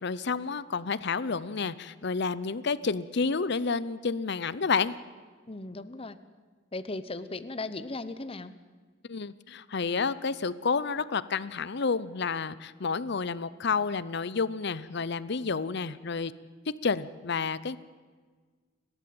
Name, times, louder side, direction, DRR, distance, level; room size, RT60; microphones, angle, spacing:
voice 1, 0.0-5.0 9.1-16.3 16.7-17.8, left 5 dB, 60° left, 17 dB, 0.7 m, -30 dB
voice 2, 5.5-6.2 6.7-8.5, left 2 dB, 30° left, 13 dB, 0.9 m, -37 dB
29.5 x 12.5 x 7.8 m, 1.5 s
head